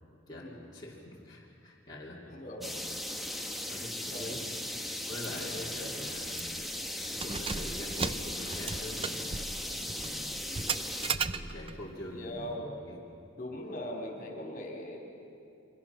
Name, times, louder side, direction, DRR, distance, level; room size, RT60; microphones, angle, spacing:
voice 1, 0.3-2.2 2.6-2.7 3.6-4.4 4.7-6.5 7.1-9.3 9.6-10.2 11.1-13.0, left 1 dB, 20° left, -7 dB, 2.7 m, -44 dB
voice 2, 2.2-2.6 3.9-4.5 5.2-5.8 10.4-10.9 12.0-12.7 13.4-15.1, left 1 dB, 40° left, 1 dB, 3.5 m, -41 dB
sound 1, 2.6-11.1, left 1 dB, ahead, 1.1 m, -37 dB
Keys jangling, 5.2-5.4 5.7-5.8 6.3-6.7 7.1-11.8, right 5 dB, 25° right, 0.5 m, -36 dB
29.0 x 24.5 x 5.9 m, 2.6 s
head